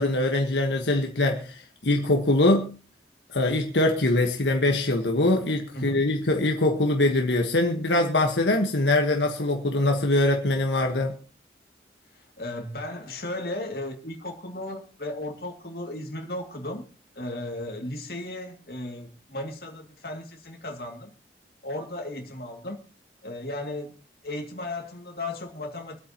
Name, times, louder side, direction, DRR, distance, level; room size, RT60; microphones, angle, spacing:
voice 1, 0.0-2.7 3.3-11.2, left 2 dB, 85° left, 1.4 m, -23 dB
voice 2, 5.7-6.0 12.4-16.8 17.2-21.1 21.6-22.8 23.2-23.9 24.2-26.0, left 1 dB, 55° left, 2.5 m, -35 dB
25.5 x 8.6 x 3.0 m
head